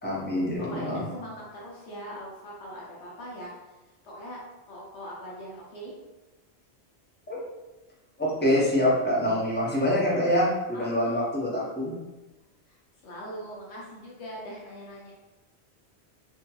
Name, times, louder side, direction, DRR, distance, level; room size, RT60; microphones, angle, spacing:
voice 1, 0.0-1.0 7.3-7.4 8.2-11.9, left 1 dB, 15° left, -6 dB, 0.5 m, -25 dB
voice 2, 0.6-3.5 4.0-5.9 10.7-11.2 12.7-12.8 13.0-15.1, equal, 80° left, -4 dB, 0.9 m, -41 dB
2.8 x 2.6 x 2.2 m, 1.1 s
omnidirectional pair, 1.1 m